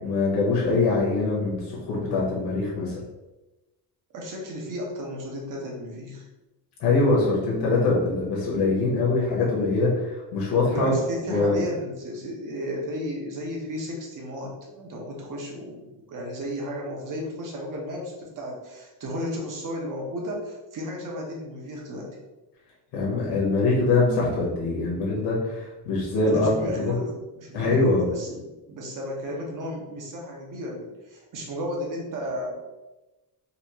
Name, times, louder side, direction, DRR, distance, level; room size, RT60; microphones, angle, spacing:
voice 1, 0.0-3.0 6.8-11.0 11.3-11.6 22.9-26.9 27.5-28.1, left 3 dB, 75° left, -5 dB, 1.3 m, -23 dB
voice 2, 4.1-6.3 10.7-22.2 26.2-32.5, equal, 50° right, -1 dB, 1.0 m, -34 dB
4.1 x 2.6 x 3.0 m, 1.0 s
cardioid pair, 145°, 41 cm